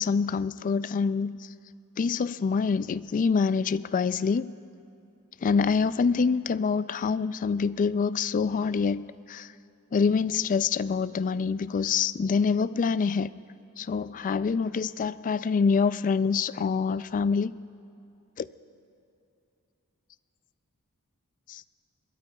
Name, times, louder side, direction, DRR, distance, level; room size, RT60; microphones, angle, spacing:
voice 1, 0.0-1.3 2.0-4.5 5.4-9.5 9.9-13.3 13.8-17.5 18.4-18.5 21.5-21.6, left 5 dB, 35° left, 16 dB, 0.3 m, -26 dB
23.5 x 21.0 x 2.3 m, 2.7 s
head